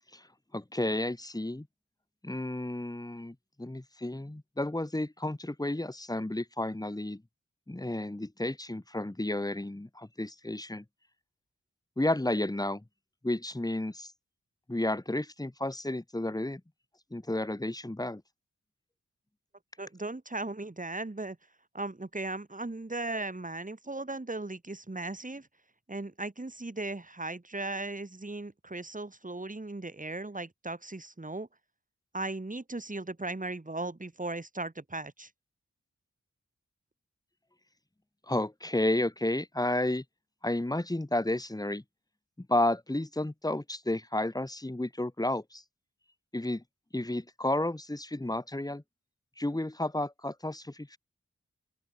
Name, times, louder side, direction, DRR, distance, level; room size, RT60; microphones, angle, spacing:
voice 1, 0.5-1.7 2.2-7.2 7.7-10.8 12.0-12.8 13.2-14.1 14.7-16.6 17.1-18.2 38.3-40.0 40.4-41.8 42.4-45.6 46.3-46.6 46.9-48.8 49.4-51.0, left 1 dB, 15° left, 1.4 m, -32 dB
voice 2, 19.8-21.4 21.7-25.5 25.9-31.5 32.1-35.3, right 2 dB, 25° right, 2.7 m, -37 dB
open air
wide cardioid pair, 60°, 29 cm